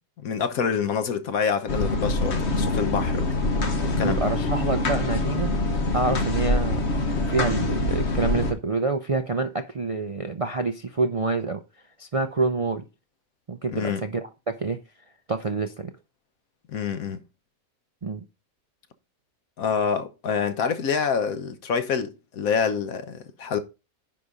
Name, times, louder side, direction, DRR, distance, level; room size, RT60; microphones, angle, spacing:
voice 1, 0.2-3.4 3.8-4.2 13.7-14.0 16.7-17.2 19.6-23.6, left 6 dB, 80° left, 1.4 m, -27 dB
sound 1, 1.7-8.5, left 2 dB, 55° left, 1.4 m, -25 dB
voice 2, 4.0-5.5 5.9-6.8 7.3-11.6 12.0-12.8 13.5-14.8 15.3-15.9 18.0-18.2, right 3 dB, 45° right, 0.4 m, -27 dB
10.0 x 4.1 x 5.0 m
omnidirectional pair, 1.5 m